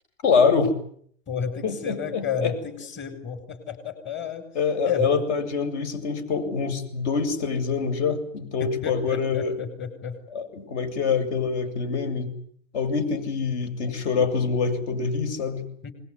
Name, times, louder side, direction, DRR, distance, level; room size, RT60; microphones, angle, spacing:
voice 1, 0.2-0.8 1.6-2.5 4.5-9.6 10.3-12.3 12.7-15.6, left 5 dB, 60° left, 9 dB, 8.0 m, -25 dB
voice 2, 1.3-4.5 4.9-5.3 8.6-10.2 15.8-15.9, left 7 dB, 30° left, 9 dB, 6.8 m, -31 dB
25.5 x 21.5 x 9.9 m, 0.64 s
hypercardioid pair, 120°, 38 cm